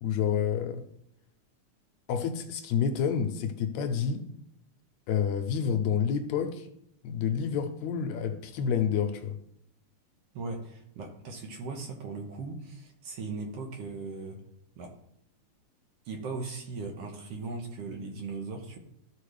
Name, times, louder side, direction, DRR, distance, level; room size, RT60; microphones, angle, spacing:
voice 1, 0.0-0.8 2.1-4.3 5.1-6.7 7.0-9.4, left 7 dB, 80° left, 1.9 m, -29 dB
voice 2, 10.3-14.4 14.8-14.9 16.1-18.8, right 3 dB, 65° right, 1.8 m, -38 dB
13.0 x 5.1 x 3.3 m
omnidirectional pair, 3.4 m